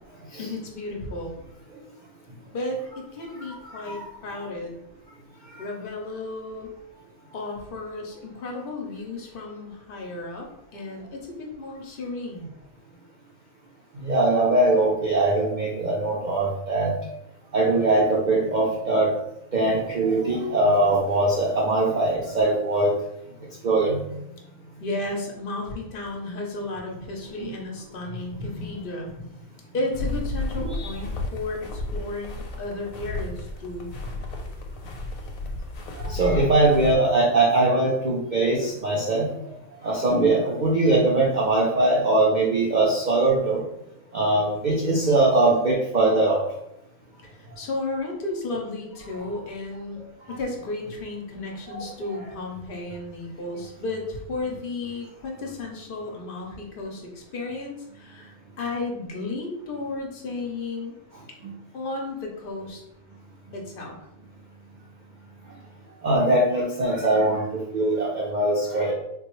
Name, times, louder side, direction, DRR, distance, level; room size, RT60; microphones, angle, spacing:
voice 1, 0.4-1.3 2.5-4.8 5.6-6.7 7.3-12.5 21.8-21.9 24.8-29.1 29.7-33.9 47.2-50.0 50.3-60.9 61.7-62.8 63.5-64.0, left 2 dB, 55° left, 1 dB, 0.6 m, -33 dB
voice 2, 3.6-4.0 5.5-5.6 14.0-16.9 17.5-19.1 19.5-23.0 23.6-24.0 27.4-27.5 30.6-30.9 36.1-39.3 39.8-43.6 44.1-46.4 51.7-51.8 61.4-61.5 66.0-68.9, right 2 dB, 60° right, -5 dB, 0.4 m, -21 dB
sound 1, 29.9-36.9, left 2 dB, 85° left, 1.0 m, -33 dB
3.5 x 2.2 x 3.0 m, 0.84 s
omnidirectional pair, 1.4 m